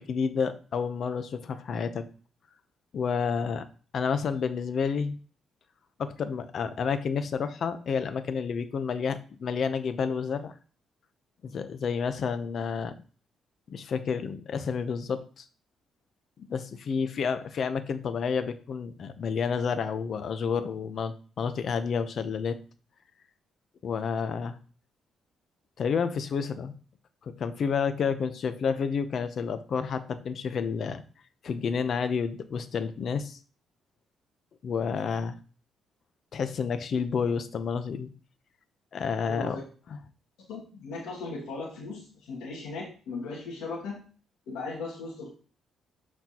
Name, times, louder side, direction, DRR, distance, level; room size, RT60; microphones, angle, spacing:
voice 1, 0.0-2.0 2.9-3.7 3.9-5.2 6.0-10.5 11.4-12.9 13.7-15.4 16.5-22.6 23.8-24.6 25.8-26.7 27.4-31.0 31.4-33.4 34.6-35.4 36.3-38.1 38.9-39.6, left 6 dB, 55° left, 11 dB, 0.8 m, -30 dB
voice 2, 39.2-39.6 40.5-44.1 44.5-45.3, left 3 dB, 90° left, -5 dB, 2.1 m, -37 dB
11.5 x 4.4 x 2.9 m, 0.39 s
cardioid pair, 90°, 0 cm